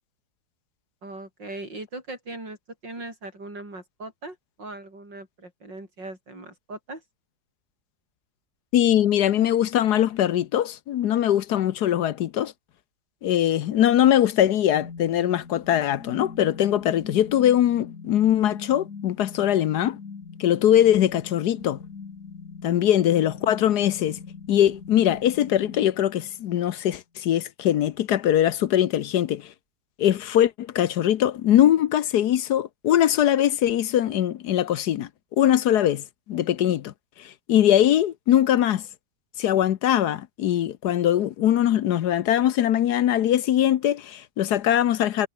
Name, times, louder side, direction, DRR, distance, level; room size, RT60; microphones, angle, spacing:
voice 1, 1.0-2.6 2.8-7.0, right 2 dB, 80° right, 8.4 m, -39 dB
voice 2, 8.7-12.5 13.2-20.0 20.4-21.8 22.6-24.2 24.5-29.5 30.0-35.1 35.4-38.8 39.4-45.3, left 11 dB, 70° left, 1.3 m, -21 dB
sound 1, 14.7-26.7, left 5 dB, 50° left, 2.4 m, -41 dB
omnidirectional pair, 1.9 m